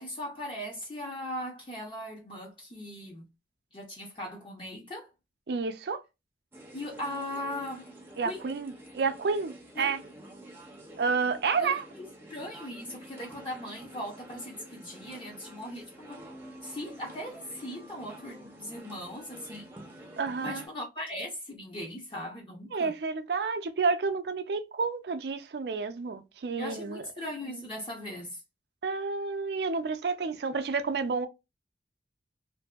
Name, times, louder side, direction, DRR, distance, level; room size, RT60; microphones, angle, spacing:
voice 1, 0.0-3.3 3.7-5.1 6.7-7.9 8.2-8.5 9.7-9.9 11.6-11.7 12.3-16.3 16.6-20.1 20.4-22.9 26.6-28.4, left 1 dB, 30° left, 0.6 m, -39 dB
voice 2, 5.5-6.0 8.2-10.0 11.0-11.8 20.2-20.6 22.7-27.0 27.5-27.6 28.8-31.3, right 4 dB, 65° right, 0.4 m, -30 dB
sound 1, 6.5-20.7, right 1 dB, 10° right, 0.5 m, -48 dB
2.6 x 2.5 x 2.3 m
head